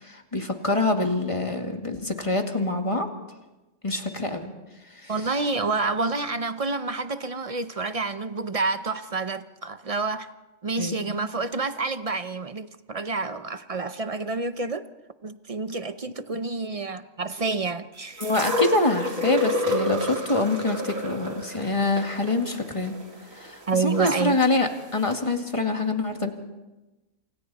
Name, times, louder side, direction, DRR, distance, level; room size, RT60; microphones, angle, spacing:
voice 1, 0.0-3.1 3.8-4.5 4.9-5.1 10.8-11.0 18.2-22.9 23.3-26.3, left 2 dB, 20° left, 2.1 m, -25 dB
voice 2, 5.1-10.3 10.6-14.9 15.2-18.3 23.7-24.4, right 3 dB, 35° right, 0.6 m, -28 dB
sound 1, 18.2-24.2 25.1-25.2, left 2 dB, 65° right, 2.8 m, -29 dB
28.0 x 26.0 x 4.2 m
omnidirectional pair, 1.5 m